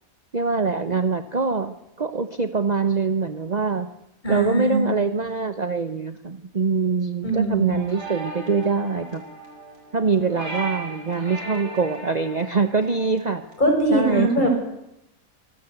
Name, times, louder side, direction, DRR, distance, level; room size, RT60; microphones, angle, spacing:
voice 1, 0.3-3.9 4.3-9.2 9.9-13.4 13.9-14.5, right 4 dB, 35° right, 9 dB, 1.0 m, -24 dB
voice 2, 4.2-4.9 7.2-7.7 13.6-14.6, right 2 dB, 30° left, 3 dB, 6.7 m, -21 dB
sound 1, 7.7-13.8, right 3 dB, 60° right, 7.4 m, -37 dB
25.5 x 18.0 x 8.1 m, 0.87 s
omnidirectional pair, 1.5 m